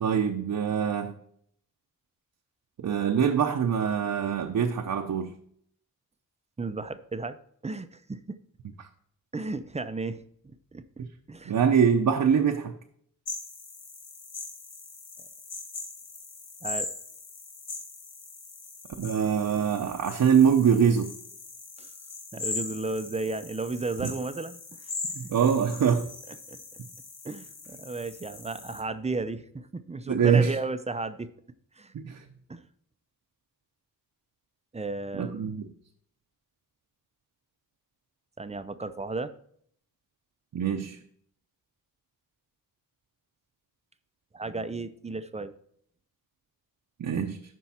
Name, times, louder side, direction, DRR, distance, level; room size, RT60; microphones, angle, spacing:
voice 1, 0.0-1.2 2.8-5.3 8.8-8.9 11.0-11.1 11.5-12.8 19.0-21.1 24.0-24.1 25.1-26.1 30.1-30.5 31.9-32.2 35.1-35.7 40.5-41.0 47.0-47.4, right 7 dB, 65° right, 3 dB, 0.8 m, -24 dB
voice 2, 6.6-7.4 7.6-8.4 9.3-11.5 16.6-16.9 21.8-21.9 22.3-24.9 26.3-26.6 27.2-31.3 31.8-31.9 32.5-32.6 34.7-35.6 38.4-39.3 44.3-45.5, right 3 dB, 20° right, 11 dB, 0.5 m, -34 dB
sound 1, 13.2-28.8, left 3 dB, 65° left, 1.9 m, -40 dB
12.0 x 4.6 x 4.2 m, 0.65 s
wide cardioid pair, 145°, 35 cm